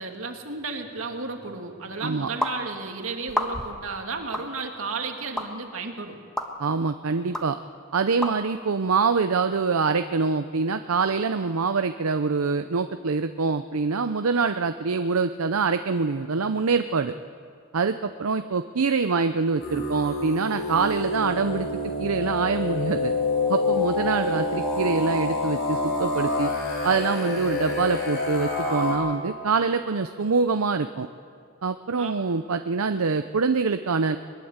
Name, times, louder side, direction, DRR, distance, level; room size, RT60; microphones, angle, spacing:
voice 1, 0.0-6.2 32.0-32.2, right 4 dB, 75° right, 3 dB, 2.4 m, -33 dB
sound 1, 2.4-2.6 3.3-3.8 4.3-4.5 5.4-5.5 6.4-6.5 7.3-7.5 8.2-8.3, equal, 5° left, 1.4 m, -28 dB
voice 2, 6.6-7.6 7.9-17.1 17.7-23.1 23.5-26.5 26.8-31.1 31.6-34.2, right 4 dB, 90° right, 9 dB, 0.7 m, -25 dB
sound 2, 19.6-28.9, left 2 dB, 55° left, 6.9 m, -27 dB
21.5 x 21.5 x 8.1 m, 2.3 s
head